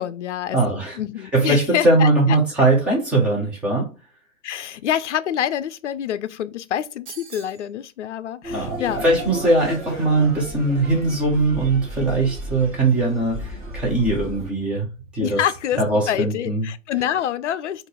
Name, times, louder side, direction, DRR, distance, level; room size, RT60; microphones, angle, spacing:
voice 1, 0.0-2.1 4.4-9.0 15.2-17.9, left 10 dB, 65° left, 0.5 m, -26 dB
voice 2, 0.5-1.0 1.3-3.9 8.5-14.9 15.1-15.4 15.8-16.7, right 2 dB, 5° right, 0.4 m, -20 dB
sound 1, 7.1-7.7, right 6 dB, 45° right, 0.8 m, -40 dB
sound 2, 8.4-14.5, right 1 dB, 25° right, 1.4 m, -34 dB
3.7 x 2.5 x 3.8 m
figure-of-eight pair, 125°, 39 cm